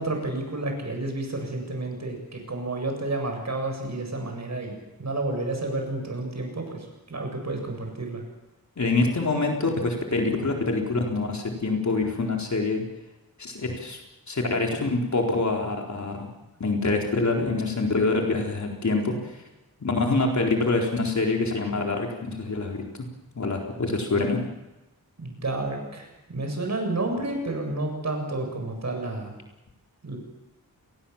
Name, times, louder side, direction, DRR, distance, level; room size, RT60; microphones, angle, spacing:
voice 1, 0.0-8.2 25.2-29.3 30.0-30.2, right 2 dB, 50° right, 3 dB, 7.9 m, -30 dB
voice 2, 8.8-12.8 13.4-14.0 14.3-16.3 16.6-19.4 19.8-23.1 23.4-24.4, left 3 dB, 50° left, 1 dB, 4.1 m, -25 dB
29.0 x 21.0 x 7.3 m, 1.0 s
wide cardioid pair, 135°, 36 cm